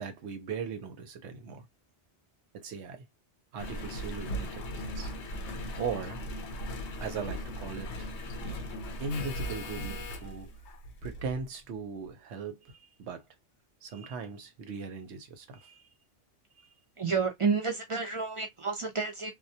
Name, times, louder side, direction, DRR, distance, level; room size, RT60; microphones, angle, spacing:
voice 1, 0.0-1.6 2.6-3.1 3.5-5.1 5.8-6.2 7.0-8.1 8.4-8.7 9.0-10.5 11.0-13.2 13.8-15.8, right 5 dB, 85° right, 0.9 m, -39 dB
Engine, 3.6-11.4 12.1-12.2, equal, 80° left, 0.9 m, -38 dB
voice 2, 17.0-19.3, right 5 dB, 45° right, 0.4 m, -30 dB
2.1 x 2.1 x 2.7 m
omnidirectional pair, 1.1 m